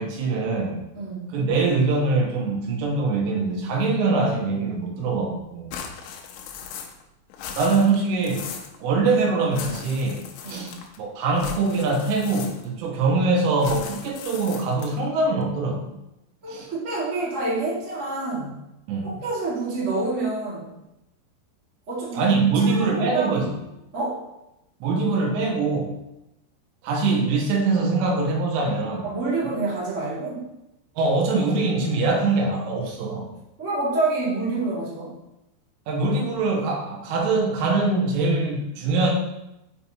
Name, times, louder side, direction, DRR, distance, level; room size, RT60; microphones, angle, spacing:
voice 1, 0.0-0.8 1.3-5.7 7.6-8.5 8.8-10.2 10.5-10.7 11.0-15.9 16.5-16.7 18.9-19.2 22.2-23.5 24.8-25.9 26.8-29.1 31.0-33.3 35.9-39.1, right 3 dB, 85° right, 1 dB, 3.5 m, -23 dB
voice 2, 0.9-1.4 10.4-10.8 16.4-18.5 19.0-20.7 21.9-23.5 23.9-24.2 29.0-30.5 33.6-35.2, right 3 dB, 65° right, -8 dB, 0.7 m, -28 dB
sound 1, 5.7-7.1 7.3-8.8 9.5-11.0 11.4-12.8 13.6-15.0, left 6 dB, 85° left, 2.8 m, -38 dB
6.9 x 5.7 x 2.9 m, 0.89 s
omnidirectional pair, 5.6 m